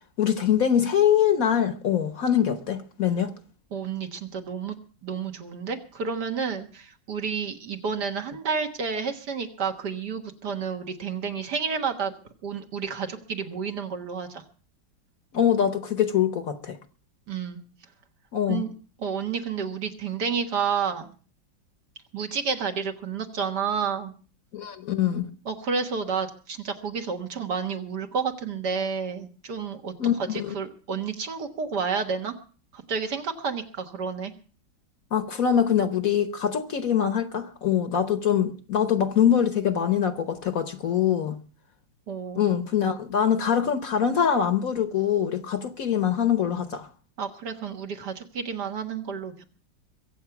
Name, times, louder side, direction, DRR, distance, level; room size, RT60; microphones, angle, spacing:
voice 1, 0.2-3.3 15.3-16.8 18.3-18.6 24.5-25.3 30.0-30.5 35.1-41.4 42.4-46.9, left 8 dB, 55° left, 1.2 m, -23 dB
voice 2, 3.7-4.8 5.0-12.1 12.4-14.4 17.3-17.6 18.5-18.7 19.0-21.1 22.1-24.1 25.5-29.9 30.2-32.4 32.7-34.3 42.1-42.5 47.2-49.4, right 6 dB, 60° right, 2.0 m, -30 dB
23.0 x 8.2 x 5.9 m
omnidirectional pair, 2.0 m